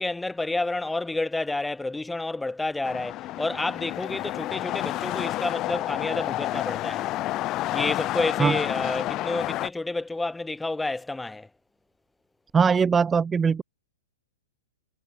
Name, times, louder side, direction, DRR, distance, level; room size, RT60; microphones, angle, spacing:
voice 1, 0.0-7.1 7.7-11.5, left 2 dB, 5° left, 2.3 m, -29 dB
sound 1, 2.8-9.7, left 16 dB, 30° left, 1.3 m, -30 dB
voice 2, 12.5-13.6, right 6 dB, 15° right, 1.2 m, -21 dB
hypercardioid pair, 135°, 0 cm